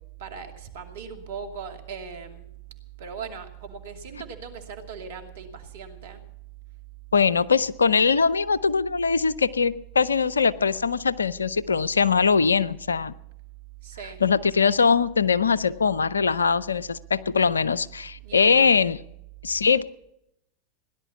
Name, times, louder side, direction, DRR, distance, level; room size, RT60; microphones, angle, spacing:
voice 1, 0.2-2.5 3.0-6.2 7.3-7.4 13.8-14.2 18.2-18.8, right 6 dB, 65° right, 5 dB, 2.4 m, -39 dB
voice 2, 7.1-13.1 14.2-19.0 19.4-19.8, left 5 dB, 85° left, 19 dB, 0.6 m, -22 dB
17.5 x 11.0 x 7.1 m, 0.79 s
hypercardioid pair, 95°, 0 cm